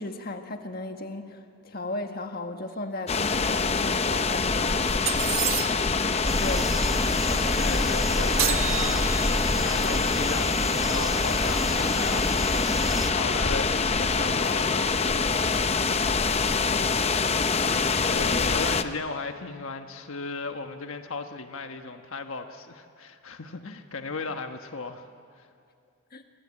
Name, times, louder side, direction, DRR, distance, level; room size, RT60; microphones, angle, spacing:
voice 1, 0.0-4.8 6.3-7.7 16.7-17.0 17.6-18.5 26.1-26.2, left 2 dB, 45° left, 5 dB, 1.6 m, -36 dB
sound 1, 3.1-18.8, left 4 dB, 30° left, 0.7 m, -25 dB
sound 2, 5.1-6.0 8.4-9.5, right 12 dB, 80° right, 1.4 m, -29 dB
voice 2, 6.3-6.8 7.6-15.4 18.1-25.1 25.3-25.5, left 3 dB, 75° left, 6 dB, 1.3 m, -36 dB
sound 3, 6.3-13.1, equal, ahead, 1.0 m, -30 dB
27.5 x 24.5 x 8.7 m, 2.4 s
head